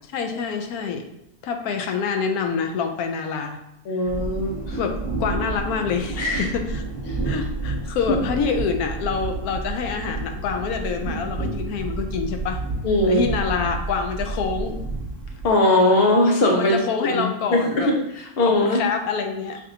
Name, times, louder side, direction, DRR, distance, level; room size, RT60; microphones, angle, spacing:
voice 1, 0.1-1.1 1.4-3.6 4.8-6.8 7.2-12.6 13.1-14.8 16.6-17.9 18.5-19.6, left 6 dB, 90° left, 5 dB, 1.1 m, -26 dB
voice 2, 3.9-4.8 6.2-6.5 12.8-13.3 15.4-17.2 17.5-18.8, left 1 dB, 50° left, 0 dB, 0.9 m, -20 dB
sound 1, 4.0-15.5, right 3 dB, 15° right, 1.2 m, -30 dB
6.4 x 2.7 x 2.7 m, 0.81 s
omnidirectional pair, 1.5 m